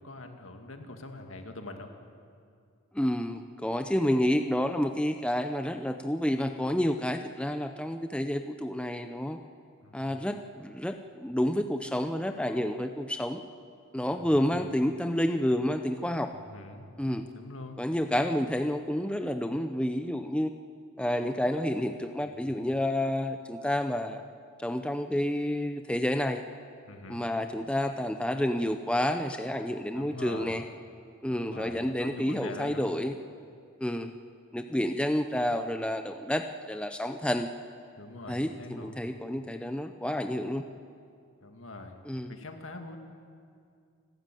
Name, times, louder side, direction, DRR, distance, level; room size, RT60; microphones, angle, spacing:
voice 1, 0.0-1.9 9.8-10.2 14.1-14.6 16.3-17.8 22.2-22.7 26.9-27.2 30.0-30.6 31.3-32.9 38.0-39.0 41.4-42.0 42.3-43.0, left 2 dB, 65° left, 5 dB, 2.1 m, -44 dB
voice 2, 2.9-9.4 9.9-13.4 13.9-16.3 17.0-17.2 17.8-20.5 21.0-24.2 24.6-26.4 27.1-30.6 31.2-33.2 33.8-34.1 34.5-37.5 38.3-40.7 42.0-42.3, left 1 dB, 5° left, 7 dB, 0.6 m, -29 dB
28.5 x 13.0 x 9.1 m, 2.3 s
head